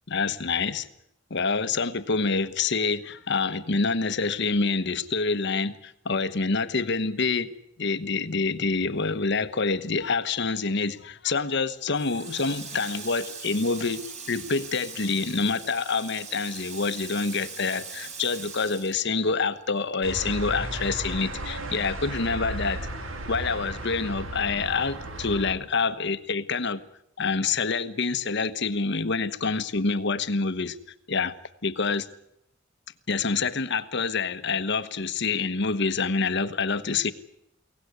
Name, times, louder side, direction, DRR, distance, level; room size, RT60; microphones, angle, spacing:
voice 1, 0.1-0.9 1.3-7.5 7.8-22.9 23.3-26.8 27.2-30.8 31.1-31.4 31.6-32.1 33.1-37.1, left 4 dB, 60° left, 1.2 m, -27 dB
Water tap faucet, 11.9-19.8 20.1-21.4, right 5 dB, 35° right, 3.9 m, -41 dB
sound 1, 20.0-25.5, right 1 dB, 85° right, 2.8 m, -35 dB
23.0 x 18.0 x 9.6 m
head